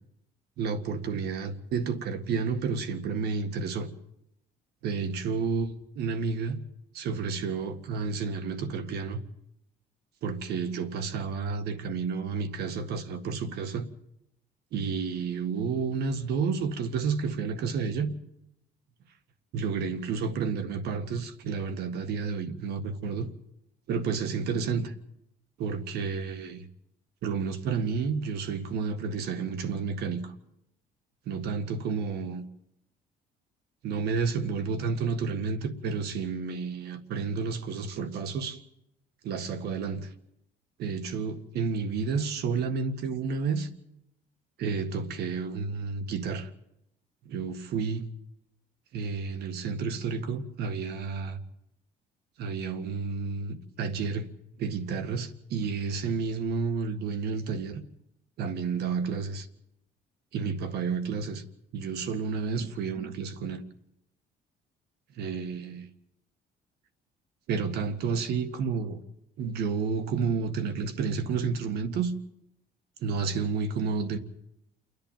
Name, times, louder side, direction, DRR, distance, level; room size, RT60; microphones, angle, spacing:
voice 1, 0.6-3.9 4.8-6.6 6.9-9.2 10.2-13.9 14.7-18.1 19.5-23.3 23.9-24.9 25.6-26.7 27.2-30.3 31.3-32.4 33.8-38.6 39.2-40.1 40.8-43.7 44.6-46.5 47.3-48.1 48.9-51.4 52.4-54.3 54.6-57.8 58.4-59.5 60.3-61.4 61.7-63.6 65.1-65.9 67.5-69.0 69.4-72.1 73.0-74.2, right 5 dB, 70° right, 1.8 m, -31 dB
29.0 x 10.5 x 9.0 m
cardioid pair, 110°, 17 cm